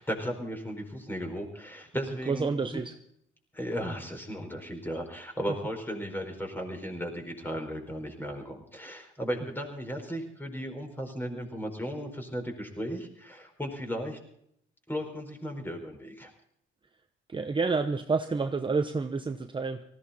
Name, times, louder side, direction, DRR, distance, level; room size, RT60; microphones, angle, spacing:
voice 1, 0.0-2.8 3.5-14.2 14.9-16.3, equal, 10° left, 3 dB, 4.6 m, -36 dB
voice 2, 2.3-2.9 17.3-19.8, right 4 dB, 25° right, 7 dB, 0.9 m, -29 dB
19.0 x 15.5 x 4.2 m, 0.70 s
cardioid pair, 90°, 20 cm